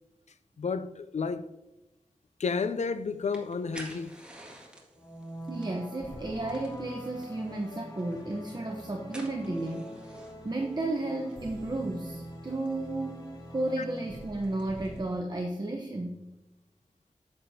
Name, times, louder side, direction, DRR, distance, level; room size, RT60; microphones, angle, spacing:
voice 1, 0.6-1.5 2.4-4.2, left 5 dB, 70° left, 0.4 m, -31 dB
sound 1, 2.5-15.0, right 1 dB, 10° right, 1.8 m, -53 dB
sound 2, 4.9-15.2, equal, 30° left, 1.6 m, -44 dB
voice 2, 5.5-13.2 13.5-16.2, right 2 dB, 35° right, 0.9 m, -33 dB
9.6 x 7.6 x 2.8 m
wide cardioid pair, 50°, 12 cm